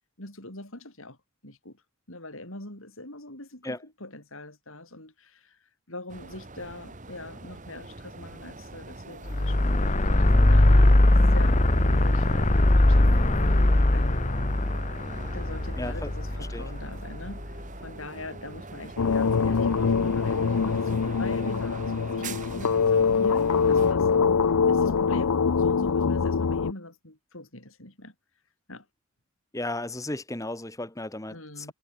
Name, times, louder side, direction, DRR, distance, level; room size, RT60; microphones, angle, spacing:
voice 1, 0.2-1.2 1.4-1.8 2.1-5.6 5.9-11.0 11.3-13.1 13.9-14.3 15.3-24.1 24.7-28.1 28.7-28.8 31.3-31.7, left 2 dB, 65° left, 7.5 m, -42 dB
sound 1, 6.1-23.9, right 3 dB, 35° right, 1.8 m, -43 dB
sound 2, 9.3-17.6, left 1 dB, 30° left, 1.1 m, -21 dB
voice 2, 15.8-16.1 16.4-16.7 29.5-31.7, left 1 dB, 15° left, 1.3 m, -35 dB
sound 3, 19.0-26.7, left 5 dB, 85° left, 0.6 m, -23 dB
head